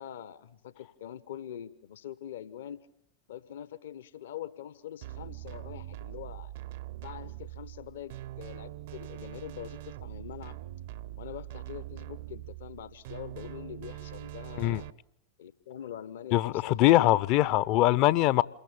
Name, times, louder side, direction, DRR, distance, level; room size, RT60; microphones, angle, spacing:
voice 1, 0.0-2.9 3.3-6.5 7.0-10.6 11.2-14.9 15.4-17.2, left 10 dB, 60° left, 1.4 m, -44 dB
sound 1, 5.0-14.9, right 15 dB, 55° right, 0.9 m, -43 dB
voice 2, 16.3-18.4, left 15 dB, 40° left, 0.9 m, -22 dB
28.5 x 22.5 x 7.6 m
figure-of-eight pair, 90°, 0 cm